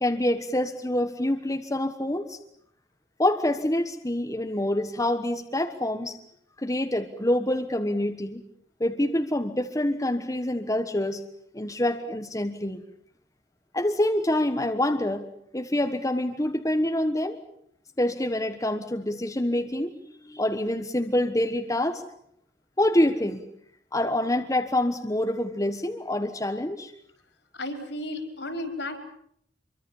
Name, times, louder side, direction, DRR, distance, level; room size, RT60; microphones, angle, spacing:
voice 1, 0.0-2.4 3.2-6.2 6.6-8.4 8.8-11.2 11.5-12.8 13.7-15.2 15.5-17.4 18.0-22.0 22.8-23.4 23.9-26.9, left 1 dB, 20° left, 6 dB, 1.3 m, -26 dB
voice 2, 27.5-29.0, left 1 dB, 70° left, 6 dB, 5.0 m, -33 dB
25.5 x 24.0 x 7.2 m, 0.68 s
head